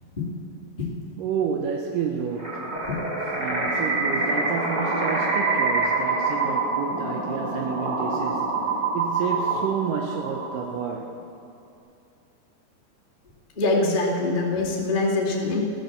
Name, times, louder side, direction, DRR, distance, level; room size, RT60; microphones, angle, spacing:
voice 1, 1.2-2.7 3.4-11.2, right 7 dB, 85° right, 2 dB, 1.9 m, -30 dB
sound 1, 2.4-10.8, right 3 dB, 20° right, 4.5 m, -26 dB
voice 2, 13.5-15.6, left 2 dB, 20° left, -6 dB, 1.2 m, -24 dB
15.0 x 13.0 x 6.7 m, 2.5 s
omnidirectional pair, 5.0 m